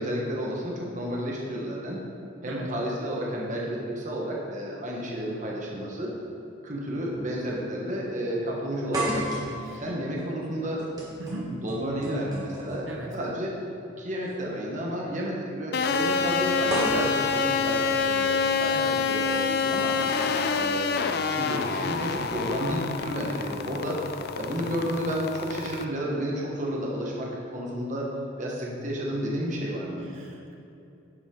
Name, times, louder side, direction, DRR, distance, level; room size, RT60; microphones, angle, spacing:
voice 1, 0.0-2.0 2.4-6.1 6.6-9.3 9.7-10.8 11.6-12.9 13.1-13.5 14.0-18.7 19.1-19.9 20.5-24.0 24.3-28.1 28.4-30.1, equal, 40° right, -3 dB, 1.4 m, -31 dB
sound 1, 5.7-5.8 6.9-7.1 7.5-7.6 8.9-13.0 14.2-14.3 16.7-18.7, right 1 dB, 20° right, 1.7 m, -34 dB
voice 2, 11.2-11.5 12.9-13.1 18.7-19.0 30.1-30.5, right 2 dB, 75° right, -1 dB, 1.3 m, -38 dB
sound 2, 15.7-25.8, left 5 dB, 50° left, 0.4 m, -27 dB
10.0 x 7.3 x 3.9 m, 2.8 s
head